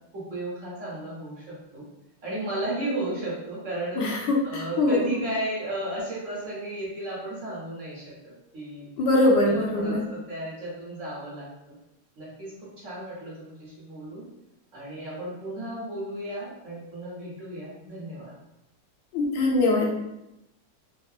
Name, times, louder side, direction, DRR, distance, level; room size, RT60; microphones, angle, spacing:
voice 1, 0.1-1.8 2.2-4.2 4.4-8.9 9.4-11.8 12.2-14.2 14.7-18.3, right 1 dB, 50° right, -7 dB, 1.3 m, -34 dB
voice 2, 4.0-5.2 9.0-10.0 19.1-19.9, left 2 dB, 85° left, -1 dB, 1.3 m, -23 dB
3.5 x 2.2 x 2.3 m, 0.90 s
omnidirectional pair, 1.9 m